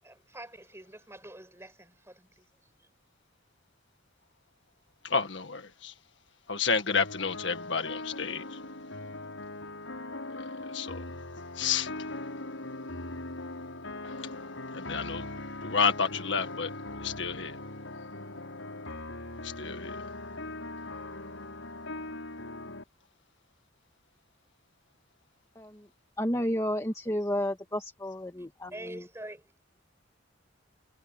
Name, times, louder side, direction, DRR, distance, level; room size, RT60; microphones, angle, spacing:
voice 1, 0.0-2.4 2.8-2.9 28.7-29.5, right 1 dB, 15° right, 6.5 m, -46 dB
voice 2, 5.0-5.9 6.5-8.6 10.3-11.0 11.6-11.9 14.0-14.3 14.7-15.3 15.6-16.7 17.0-17.6 19.4-20.0, left 5 dB, 65° left, 1.8 m, -30 dB
sound 1, 6.9-22.8, left 2 dB, 85° left, 6.8 m, -40 dB
voice 3, 25.6-25.9 26.2-29.0, equal, 15° left, 2.0 m, -32 dB
head